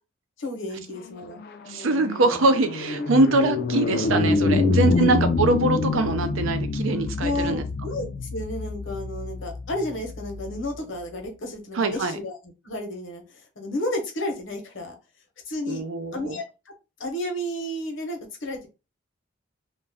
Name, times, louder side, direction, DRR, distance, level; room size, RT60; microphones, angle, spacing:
voice 1, 0.4-1.4 4.5-4.6 4.9-5.1 7.2-12.4 12.6-14.9 15.5-15.8 16.1-16.7 17.0-18.7, left 1 dB, 75° left, 0.8 m, -32 dB
sound 1, 1.1-10.6, left 3 dB, 50° left, 0.3 m, -26 dB
voice 2, 1.7-7.6 11.8-12.2 15.7-16.4, right 2 dB, 90° right, 0.5 m, -23 dB
2.3 x 2.1 x 3.4 m
head